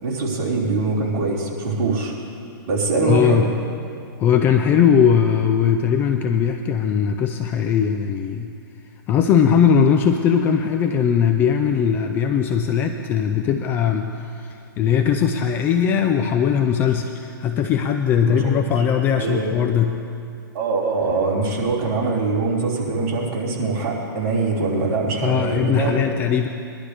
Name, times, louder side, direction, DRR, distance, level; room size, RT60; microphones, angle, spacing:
voice 1, 0.0-2.1 2.7-3.4 18.2-18.8 19.1-19.5 20.5-26.0, right 3 dB, 40° right, -5 dB, 3.4 m, -23 dB
voice 2, 3.0-3.5 4.2-8.5 9.1-20.0 25.2-26.5, left 7 dB, 15° left, 6 dB, 0.4 m, -19 dB
21.0 x 12.0 x 3.4 m, 2.5 s
hypercardioid pair, 150°, 12 cm